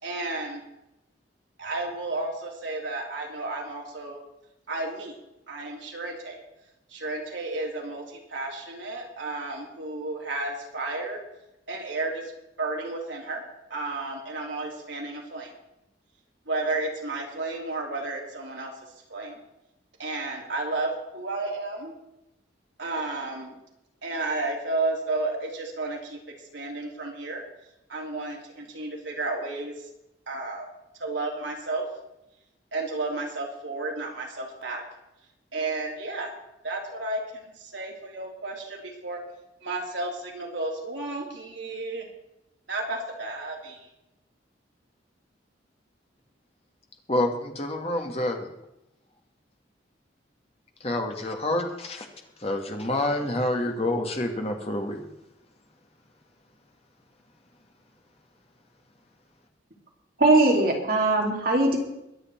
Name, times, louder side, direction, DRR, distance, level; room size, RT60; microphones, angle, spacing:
voice 1, 0.0-0.6 1.6-4.2 4.7-5.2 5.5-6.4 6.9-11.2 11.7-12.3 12.6-13.4 13.7-15.5 16.5-18.7 19.1-19.4 20.0-21.9 22.8-23.5 24.0-26.2 26.5-27.4 27.9-29.7 30.3-30.7 31.0-31.9 32.7-34.8 35.5-36.3 36.6-39.2 39.6-42.1 42.7-43.9, right 2 dB, 75° right, 0 dB, 3.2 m, -32 dB
voice 2, 47.1-48.5 50.8-52.1 52.4-55.0, left 1 dB, 35° left, 3 dB, 1.9 m, -28 dB
voice 3, 60.2-61.8, right 2 dB, 50° right, 0 dB, 2.8 m, -20 dB
22.5 x 8.2 x 4.5 m, 0.89 s
head